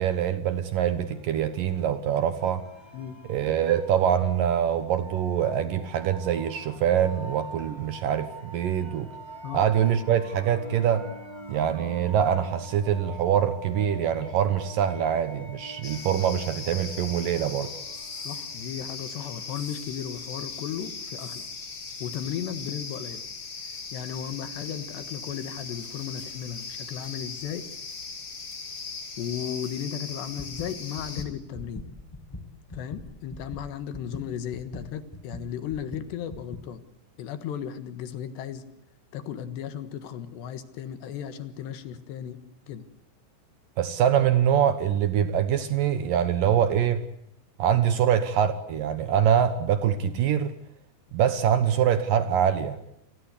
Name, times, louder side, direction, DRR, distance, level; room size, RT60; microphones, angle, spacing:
voice 1, 0.0-2.6 3.3-9.1 9.5-11.0 11.5-17.7 43.8-47.0 47.6-50.5 51.1-52.8, right 9 dB, 65° right, 2.3 m, -24 dB
sound 1, 1.1-18.6, right 2 dB, 5° right, 2.4 m, -44 dB
sound 2, 15.8-31.2, left 4 dB, 30° left, 3.0 m, -39 dB
voice 2, 18.3-21.5 22.0-23.2 23.9-27.6 29.2-31.9 32.7-36.8 37.2-38.7 39.1-42.4 42.7-42.8, left 9 dB, 75° left, 3.6 m, -35 dB
sound 3, 30.4-36.7, left 2 dB, 10° left, 1.1 m, -41 dB
29.5 x 19.5 x 8.3 m
omnidirectional pair, 5.1 m